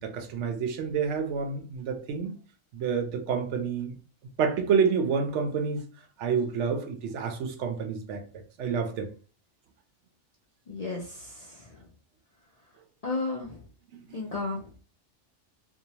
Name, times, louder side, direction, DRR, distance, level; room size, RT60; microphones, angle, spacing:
voice 1, 0.0-2.4 2.7-4.0 4.4-5.8 6.2-8.2 8.6-9.1, right 6 dB, 75° right, 0.9 m, -28 dB
voice 2, 10.7-11.5 13.0-13.6 14.1-14.8, left 3 dB, 55° left, 0.4 m, -33 dB
2.7 x 2.0 x 2.8 m
omnidirectional pair, 1.2 m